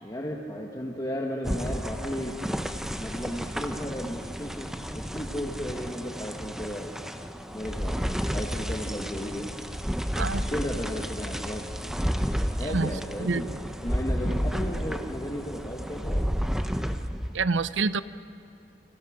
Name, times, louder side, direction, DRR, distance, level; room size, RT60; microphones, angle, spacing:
voice 1, 0.0-2.4 3.0-6.9 7.5-9.5 10.1-11.6 12.4-13.5 13.8-16.3, equal, 20° left, -1 dB, 1.6 m, -35 dB
sound 1, 1.4-17.4, equal, 5° right, 0.8 m, -31 dB
voice 2, 10.2-10.5 12.6-12.9 13.2-13.6 17.3-18.0, right 4 dB, 90° right, 14 dB, 0.7 m, -27 dB
29.5 x 25.5 x 5.2 m, 2.8 s
head